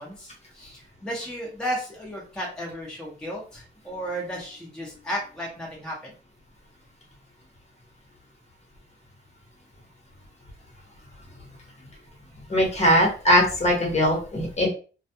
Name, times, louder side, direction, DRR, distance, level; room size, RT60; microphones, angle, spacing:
voice 1, 0.0-6.1, equal, 5° left, -4 dB, 0.8 m, -34 dB
voice 2, 12.5-14.7, equal, 30° left, -1 dB, 1.0 m, -20 dB
2.3 x 2.2 x 2.8 m, 0.37 s
cardioid pair, 120°, 21 cm